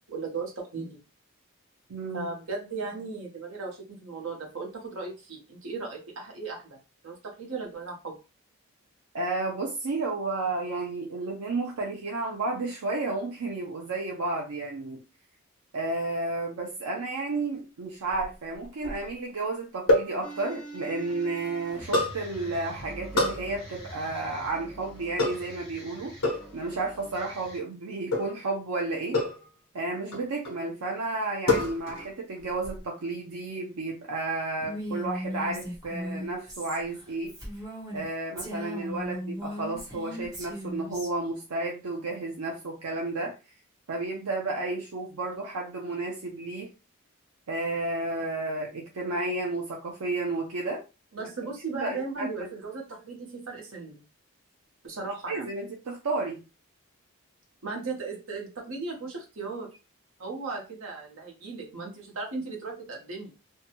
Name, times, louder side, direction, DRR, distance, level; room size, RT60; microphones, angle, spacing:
voice 1, 0.1-1.0 2.1-6.8 7.0-8.2 51.1-54.0 54.8-55.5 57.6-59.7 60.2-63.3, right 4 dB, 65° right, 0 dB, 0.9 m, -36 dB
voice 2, 1.9-2.3 9.1-15.0 15.7-29.2 29.7-37.3 37.9-43.3 43.9-46.7 47.5-50.8 51.7-52.5 55.3-56.4, right 2 dB, 85° right, -1 dB, 0.6 m, -32 dB
sound 1, 18.1-19.1 19.9-20.2 21.9-22.2 23.2-23.5 25.2-25.6 26.2-26.5 28.1-28.4 29.1-29.5 30.1-30.6 31.5-32.1 32.4-32.8, left 2 dB, 70° left, 0.9 m, -26 dB
sound 2, 20.2-27.6, right 1 dB, 15° left, 1.5 m, -44 dB
Female speech woman speaking, 34.6-38.0 38.4-41.1, equal, 15° right, 1.0 m, -37 dB
2.7 x 2.2 x 2.8 m, 0.30 s
head